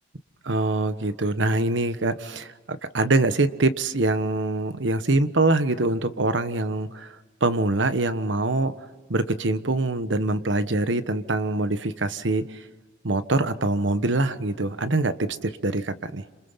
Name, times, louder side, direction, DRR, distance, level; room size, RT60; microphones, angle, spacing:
voice 1, 0.4-7.2 7.4-8.7 9.1-12.6 13.0-16.2, right 2 dB, 80° right, 11 dB, 1.2 m, -24 dB
30.0 x 27.0 x 5.7 m, 1.3 s
head